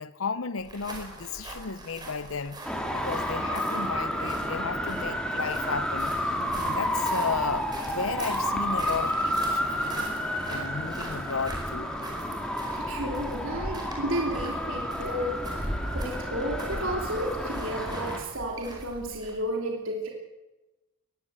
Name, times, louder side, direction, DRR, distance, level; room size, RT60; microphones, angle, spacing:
voice 1, 0.0-2.6 2.9-6.4 6.6-10.1 10.5-12.0, left 5 dB, 80° left, 0.8 m, -34 dB
sound 1, 0.6-19.5, right 1 dB, 20° right, 4.8 m, -41 dB
Traffic noise roadway noise, 2.6-18.2, equal, 5° left, 2.6 m, -31 dB
voice 2, 12.7-20.1, equal, 75° right, 3.1 m, -32 dB
20.5 x 16.0 x 8.1 m
head